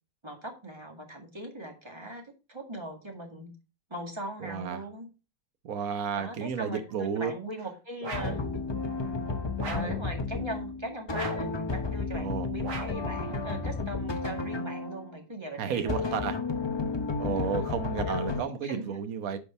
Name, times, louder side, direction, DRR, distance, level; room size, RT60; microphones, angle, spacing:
voice 1, 0.2-3.5 3.9-5.1 6.1-8.4 9.6-16.2 17.3-17.7 18.0-18.3 18.6-19.0, right 1 dB, 15° right, 2.0 m, -40 dB
voice 2, 4.4-4.8 5.6-7.3 9.6-9.9 12.1-12.5 15.6-16.4 17.2-19.4, right 7 dB, 60° right, 1.4 m, -32 dB
sound 1, 8.0-8.5 9.6-10.0 11.1-11.6 12.6-13.1, right 3 dB, 75° right, 2.5 m, -38 dB
sound 2, 8.1-15.1 15.9-18.4, left 4 dB, 30° left, 0.5 m, -32 dB
9.8 x 5.2 x 4.3 m
omnidirectional pair, 1.8 m